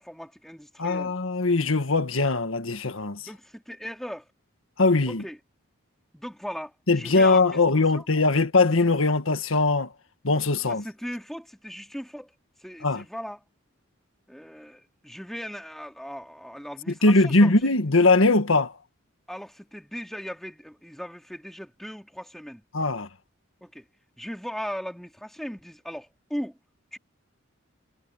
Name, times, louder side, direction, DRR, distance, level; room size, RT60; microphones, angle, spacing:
voice 1, 0.0-1.1 3.2-4.3 5.1-5.4 6.1-7.6 7.9-8.1 10.6-12.3 12.6-13.4 14.3-17.7 19.3-22.6 23.6-23.9 24.2-26.6 26.9-27.0, equal, ahead, 2.6 m, -38 dB
voice 2, 0.8-3.2 4.8-5.2 6.9-9.9 10.2-10.8 12.8-13.0 17.0-18.7 22.7-23.1, left 3 dB, 85° left, 1.7 m, -21 dB
head